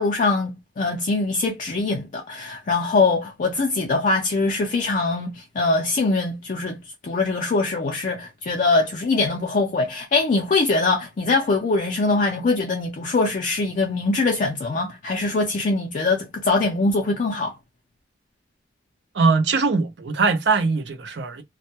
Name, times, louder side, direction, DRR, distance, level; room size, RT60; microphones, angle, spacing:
voice 1, 0.0-6.8 7.0-17.5, left 3 dB, 45° left, 0.4 m, -22 dB
voice 2, 19.1-21.4, right 4 dB, 65° right, 0.6 m, -21 dB
2.1 x 2.1 x 2.8 m
head